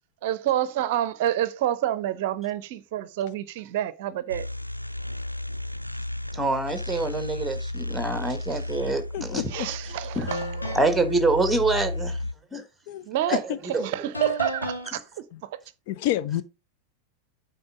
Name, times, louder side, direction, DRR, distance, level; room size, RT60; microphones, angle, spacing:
voice 1, 0.2-4.5 8.5-8.6 9.5-10.8 13.1-13.4 13.7-15.6, right 12 dB, 50° right, 0.6 m, -28 dB
sound 1, 4.3-12.3, left 1 dB, 90° right, 0.3 m, -33 dB
voice 2, 6.3-9.4 10.1-10.3 10.7-12.2 12.5-12.6 13.3-13.4 13.7-13.8, right 2 dB, 5° right, 1.4 m, -25 dB
voice 3, 9.1-9.7 12.9-13.6 15.9-16.4, left 13 dB, 45° left, 0.5 m, -28 dB
sound 2, 9.5-9.6 10.3-11.1 14.1-14.9, left 2 dB, 80° left, 1.6 m, -34 dB
8.7 x 4.3 x 5.0 m
figure-of-eight pair, 90°, 0 cm